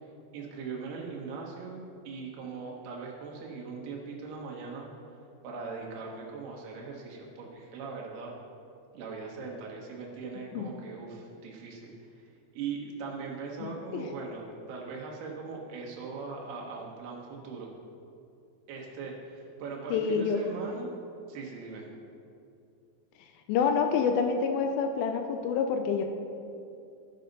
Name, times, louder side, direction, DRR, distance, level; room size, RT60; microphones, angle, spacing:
voice 1, 0.3-4.9 5.4-8.4 8.9-11.9 12.5-17.7 18.7-20.9 21.3-21.9, right 4 dB, 70° right, -2 dB, 3.3 m, -40 dB
voice 2, 19.9-20.4 23.5-26.0, left 6 dB, 90° left, 5 dB, 2.0 m, -27 dB
13.0 x 6.7 x 5.4 m, 2.6 s
omnidirectional pair, 4.9 m